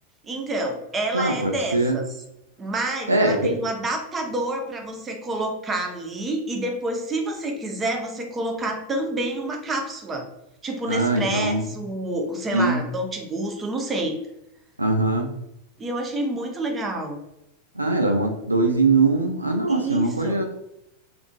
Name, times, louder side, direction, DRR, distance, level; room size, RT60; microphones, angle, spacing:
voice 1, 0.2-2.0 2.6-10.3 10.6-14.2 15.8-17.2 19.7-20.4, right 1 dB, 20° right, 3 dB, 0.6 m, -28 dB
voice 2, 1.1-2.0 3.1-3.5 10.9-11.6 12.5-12.8 14.8-15.3 17.8-20.5, right 2 dB, 80° right, 2 dB, 0.4 m, -21 dB
3.5 x 2.4 x 2.2 m, 0.83 s
figure-of-eight pair, 90°, 0 cm